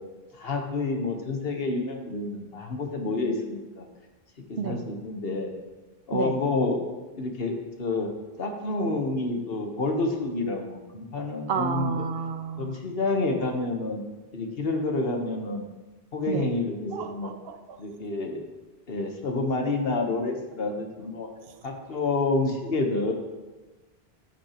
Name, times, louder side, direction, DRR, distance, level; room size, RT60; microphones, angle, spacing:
voice 1, 0.3-3.9 4.5-5.5 6.1-6.8 7.2-8.1 8.4-11.9 12.6-14.0 14.3-15.6 16.1-17.4 17.8-18.4 18.9-21.3 21.6-23.1, left 3 dB, 70° left, 3 dB, 1.4 m, -28 dB
voice 2, 11.5-12.8 16.3-16.5 16.9-17.8, right 6 dB, 70° right, 9 dB, 0.9 m, -31 dB
14.5 x 5.9 x 3.0 m, 1.2 s
omnidirectional pair, 1.0 m